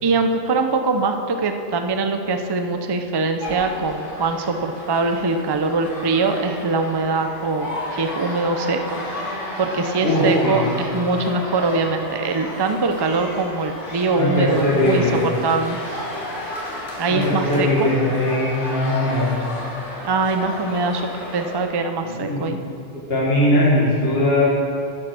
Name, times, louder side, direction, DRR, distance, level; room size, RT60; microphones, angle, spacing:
voice 1, 0.0-9.0 9.3-15.8 17.0-17.9 20.0-22.6, right 3 dB, 30° right, 6 dB, 0.4 m, -23 dB
sound 1, 3.4-21.6, left 1 dB, 85° left, 2.5 m, -33 dB
voice 2, 10.0-10.6 14.1-15.1 17.1-19.3 22.0-22.5 22.9-24.5, left 1 dB, 55° left, -6 dB, 2.1 m, -20 dB
9.6 x 7.7 x 6.2 m, 2.6 s
omnidirectional pair, 1.2 m